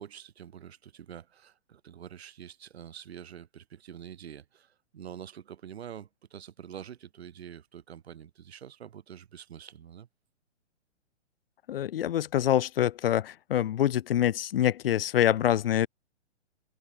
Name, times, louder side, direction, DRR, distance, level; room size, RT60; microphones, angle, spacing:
voice 1, 0.0-10.1, right 9 dB, 60° right, 4.8 m, -46 dB
voice 2, 11.7-15.9, left 11 dB, 55° left, 1.4 m, -25 dB
figure-of-eight pair, 125°, 35 cm